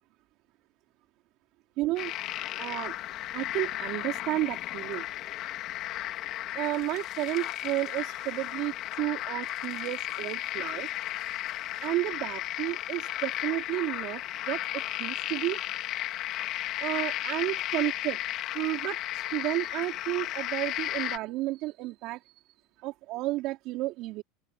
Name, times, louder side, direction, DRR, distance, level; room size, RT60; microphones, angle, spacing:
voice 1, 1.8-2.1 2.6-2.9 3.3-5.1 6.5-10.9 11.8-15.6 16.8-18.2 18.5-22.2 22.8-24.2, right 18 dB, 55° right, 3.7 m, -32 dB
sound 1, 2.0-21.2, left 14 dB, 50° left, 2.2 m, -34 dB
open air
supercardioid pair, 135°, 0 cm